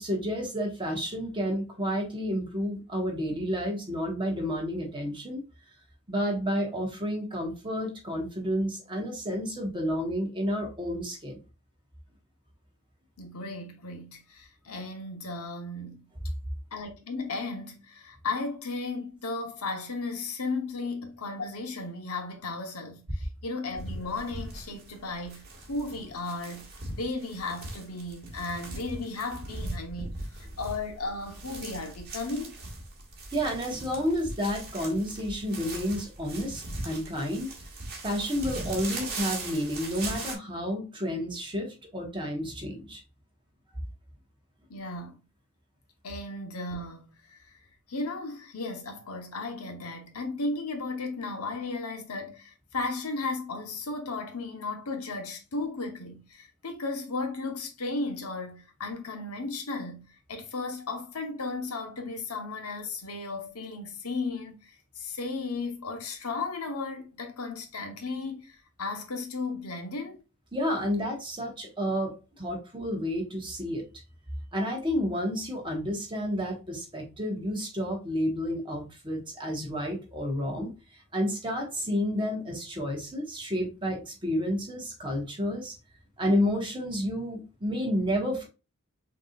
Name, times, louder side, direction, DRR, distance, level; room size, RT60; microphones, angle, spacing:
voice 1, 0.0-5.4 6.1-11.4 33.3-37.5 38.0-43.0 70.5-73.8 74.5-80.7 81.1-85.7 86.2-88.5, equal, 20° right, 1.3 m, -30 dB
voice 2, 13.2-16.1 16.7-30.1 30.4-32.6 44.7-45.2 46.0-47.5 47.9-70.2, left 3 dB, 85° left, 1.1 m, -35 dB
sound 1, 23.7-40.4, right 2 dB, 45° right, 1.6 m, -39 dB
5.8 x 3.0 x 2.4 m
head